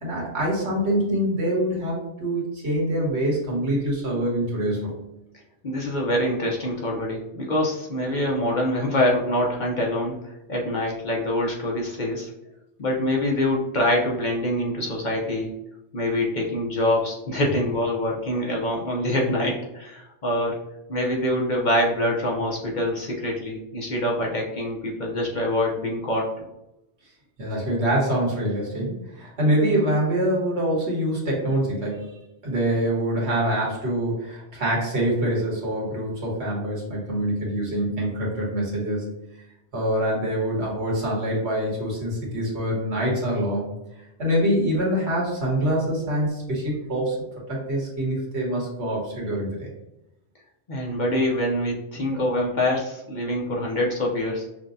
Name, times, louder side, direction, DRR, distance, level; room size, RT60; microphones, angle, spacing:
voice 1, 0.0-4.9 27.4-32.2 32.4-39.1 39.7-43.7 44.2-49.7, right 1 dB, 75° right, -3 dB, 1.6 m, -25 dB
voice 2, 5.6-10.2 10.5-12.3 12.8-15.5 15.9-20.6 20.9-26.3 50.7-54.5, left 1 dB, 50° left, -2 dB, 0.8 m, -25 dB
5.9 x 2.2 x 2.6 m, 0.90 s
omnidirectional pair, 1.1 m